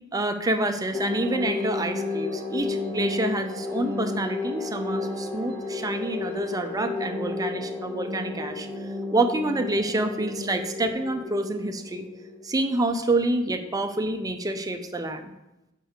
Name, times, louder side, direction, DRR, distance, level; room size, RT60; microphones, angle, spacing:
voice 1, 0.1-8.7 9.1-12.1 12.4-15.3, right 2 dB, 15° right, 7 dB, 0.6 m, -27 dB
sound 1, 0.9-12.7, left 3 dB, 10° left, 1.0 m, -32 dB
6.5 x 4.5 x 6.5 m, 0.93 s
head